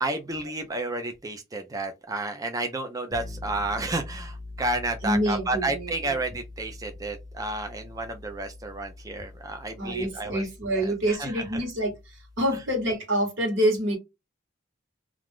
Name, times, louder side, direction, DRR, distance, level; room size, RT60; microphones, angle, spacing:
voice 1, 0.0-10.4 10.7-11.6, right 2 dB, 15° right, 0.3 m, -31 dB
sound 1, 3.1-12.9, left 2 dB, 20° left, 0.7 m, -43 dB
voice 2, 5.0-6.1 9.8-11.9 12.4-14.0, right 1 dB, 60° right, 1.2 m, -26 dB
2.4 x 2.3 x 3.4 m
head